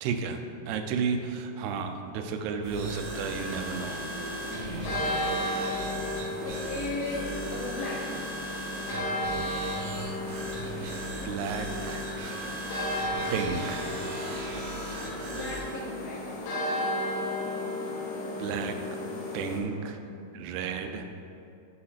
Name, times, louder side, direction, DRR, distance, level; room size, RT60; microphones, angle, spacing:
voice 1, 0.0-4.0 11.2-12.0 12.5-12.6 13.3-13.9 18.4-18.8 19.3-20.0 20.3-21.1, right 5 dB, 90° right, 6 dB, 2.6 m, -32 dB
sound 1, 2.6-19.6, left 1 dB, 90° left, 3.2 m, -34 dB
sound 2, 2.6-15.7, right 2 dB, 65° right, 1.9 m, -38 dB
voice 2, 4.5-5.0 6.4-8.1 15.2-16.4, left 3 dB, 75° left, -4 dB, 2.6 m, -37 dB
8.4 x 7.5 x 2.4 m, 2.6 s
omnidirectional pair, 4.5 m